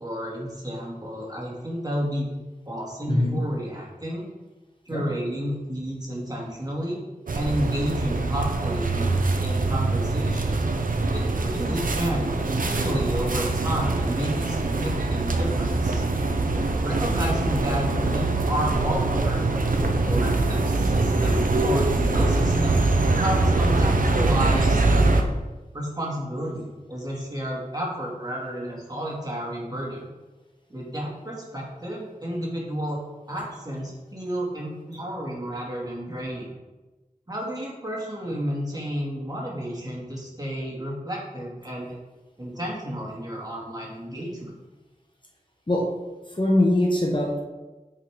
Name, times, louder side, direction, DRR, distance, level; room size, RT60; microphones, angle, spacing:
voice 1, 0.0-2.3 2.7-4.2 4.9-7.0 7.3-9.1 9.4-10.6 11.1-12.3 12.7-16.0 16.8-22.8 23.1-24.9 25.7-30.1 30.7-33.0 33.3-36.5 37.3-42.0 42.4-44.5, equal, 30° right, -3 dB, 2.2 m, -31 dB
voice 2, 3.1-3.4 4.9-5.1 45.7-45.9 46.3-47.4, left 1 dB, 35° left, 0 dB, 1.2 m, -22 dB
sound 1, 7.3-25.2, right 2 dB, 75° right, 0.7 m, -23 dB
8.2 x 5.1 x 3.6 m, 1.1 s
wide cardioid pair, 45°, 14 cm